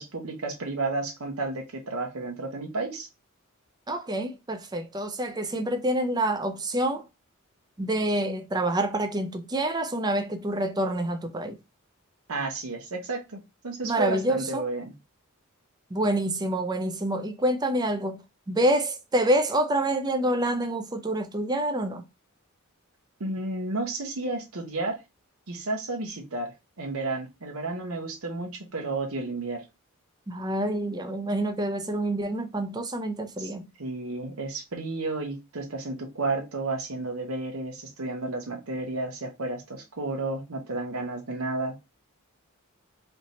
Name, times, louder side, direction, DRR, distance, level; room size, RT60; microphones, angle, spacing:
voice 1, 0.0-3.1 12.3-14.9 23.2-25.0 25.5-26.5 26.8-29.6 33.4-33.5 33.8-41.8, right 2 dB, 80° right, 0.9 m, -32 dB
voice 2, 3.9-7.0 7.8-11.6 13.8-14.6 15.9-18.2 18.5-22.0 30.3-33.6, right 1 dB, 20° right, 0.5 m, -27 dB
3.3 x 2.7 x 4.1 m
head